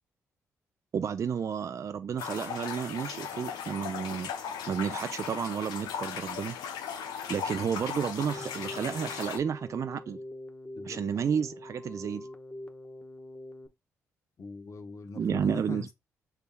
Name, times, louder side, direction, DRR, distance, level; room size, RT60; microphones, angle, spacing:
voice 1, 0.9-4.3 4.7-6.6 7.3-10.2 10.8-12.3 15.2-15.9, right 7 dB, 45° right, 0.4 m, -31 dB
sound 1, 2.2-9.4, left 7 dB, 75° left, 0.6 m, -37 dB
Keyboard (musical), 8.3-13.7, left 1 dB, 15° left, 0.9 m, -44 dB
voice 2, 14.4-15.9, left 4 dB, 50° left, 1.0 m, -41 dB
5.6 x 3.5 x 2.2 m
hypercardioid pair, 45°, 7 cm